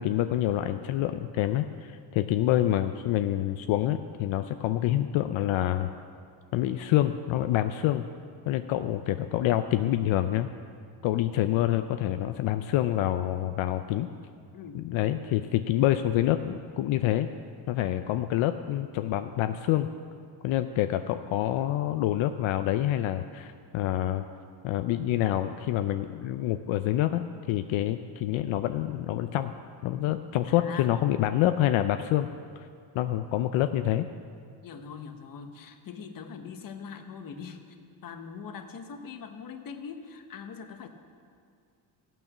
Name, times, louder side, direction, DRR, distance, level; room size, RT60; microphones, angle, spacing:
voice 1, 0.0-5.9 6.5-8.1 8.5-10.5 11.0-14.1 14.7-17.3 17.7-19.9 20.4-24.2 24.6-29.5 29.8-32.3 32.9-34.1, left 13 dB, 80° left, 9 dB, 0.6 m, -27 dB
voice 2, 14.5-14.8 30.5-30.9 34.6-37.8 38.0-40.9, left 6 dB, 45° left, 6 dB, 1.1 m, -42 dB
15.5 x 9.0 x 6.1 m, 2.3 s
cardioid pair, 150°, 47 cm